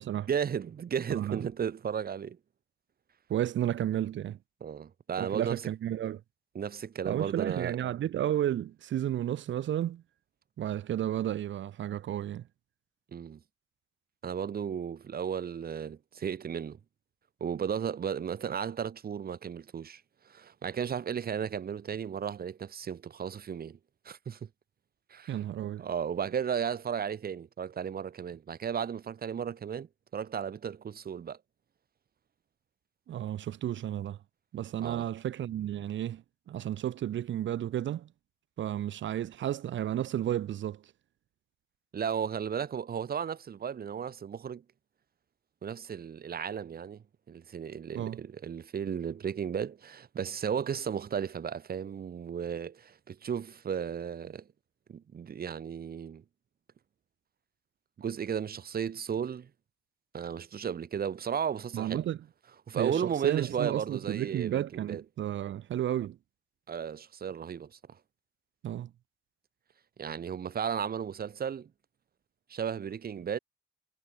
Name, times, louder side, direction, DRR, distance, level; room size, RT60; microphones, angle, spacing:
voice 1, 0.3-2.4 4.6-5.6 6.5-7.8 13.1-13.4 14.2-16.8 17.4-20.0 20.3-23.8 24.0-24.5 25.1-25.4 25.8-29.9 30.1-31.4 34.8-35.0 41.9-44.6 45.6-47.0 47.3-54.4 54.9-56.2 58.0-59.5 60.1-62.1 62.7-65.0 66.7-67.8 70.0-71.7 72.5-73.4, right 7 dB, 50° right, 2.5 m, -34 dB
voice 2, 1.1-1.4 3.3-4.4 5.2-6.2 7.0-10.0 10.6-12.4 25.3-25.8 33.1-34.2 34.5-38.1 38.6-40.8 47.9-48.2 61.7-62.2 62.7-66.2 68.6-68.9, right 11 dB, 70° right, 2.6 m, -32 dB
cardioid pair, 90°, 20 cm